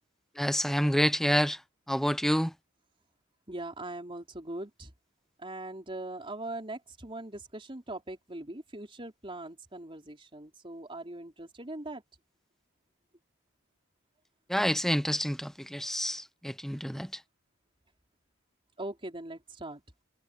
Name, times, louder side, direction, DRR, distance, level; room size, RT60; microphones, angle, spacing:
voice 1, 0.4-1.6 1.9-2.5 14.5-17.1, equal, ahead, 1.0 m, -28 dB
voice 2, 3.5-4.9 5.4-12.0 18.8-19.8, right 2 dB, 25° right, 3.9 m, -41 dB
head